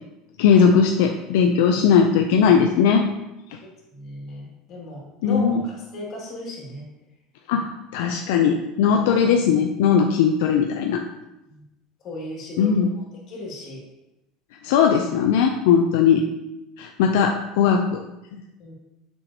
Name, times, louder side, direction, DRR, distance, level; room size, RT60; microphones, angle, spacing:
voice 1, 0.4-3.1 5.2-5.7 7.5-11.0 12.6-12.9 14.6-16.3 16.8-18.0 18.3-18.4, left 6 dB, 80° left, 3 dB, 0.5 m, -19 dB
voice 2, 3.9-6.8 12.0-12.7 13.3-13.8 18.6-18.7, left 2 dB, 45° left, -3 dB, 2.6 m, -35 dB
7.9 x 6.4 x 2.9 m, 0.94 s
cardioid pair, 145°, 0 cm